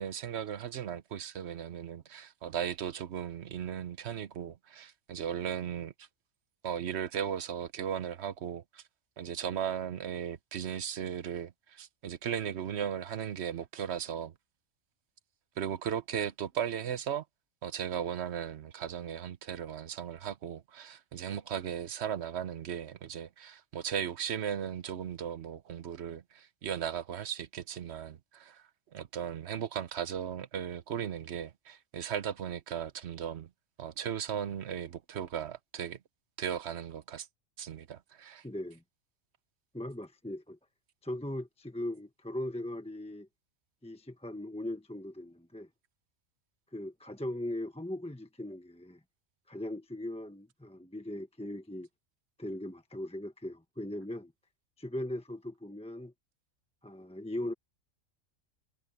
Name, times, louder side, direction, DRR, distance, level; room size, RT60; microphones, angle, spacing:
voice 1, 0.0-6.1 6.6-8.8 9.2-14.3 15.6-17.2 17.6-28.6 28.9-33.5 33.8-36.0 36.4-37.3 37.6-38.4, right 9 dB, 60° right, 1.0 m, -37 dB
voice 2, 38.4-38.8 39.7-40.6 41.0-43.3 43.8-45.7 46.7-49.0 49.5-51.9 52.4-54.3 54.8-56.1 56.8-57.5, left 1 dB, 5° left, 0.9 m, -39 dB
omnidirectional pair, 1.3 m